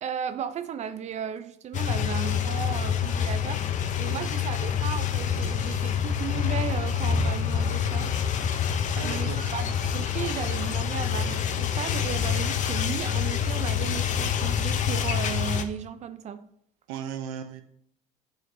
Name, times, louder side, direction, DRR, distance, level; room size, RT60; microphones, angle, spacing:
voice 1, 0.0-3.6 4.0-8.1 9.0-16.4, right 8 dB, 45° right, 0.5 m, -35 dB
sound 1, 1.7-15.6, left 8 dB, 50° left, 0.6 m, -27 dB
voice 2, 9.0-9.5 16.9-17.6, right 8 dB, 80° right, 0.7 m, -36 dB
9.1 x 4.3 x 2.6 m
hypercardioid pair, 75°, 17 cm